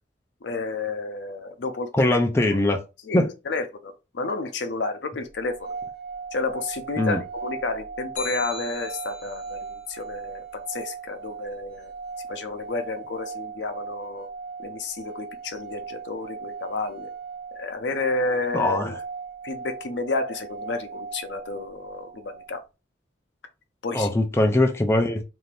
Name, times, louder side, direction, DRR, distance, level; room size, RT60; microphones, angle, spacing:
voice 1, 0.4-2.2 3.0-5.8 6.3-11.9 12.3-14.3 14.6-17.1 17.5-19.0 19.4-22.6 23.8-24.1, left 3 dB, 75° left, 0.6 m, -31 dB
voice 2, 2.0-2.8 3.1-3.3 7.0-7.2 18.5-19.0 23.9-25.2, left 1 dB, 15° left, 0.4 m, -21 dB
sound 1, 5.3-22.5, right 5 dB, 55° right, 0.4 m, -38 dB
sound 2, 8.2-9.5, left 1 dB, 45° left, 0.9 m, -36 dB
2.6 x 2.5 x 3.2 m
head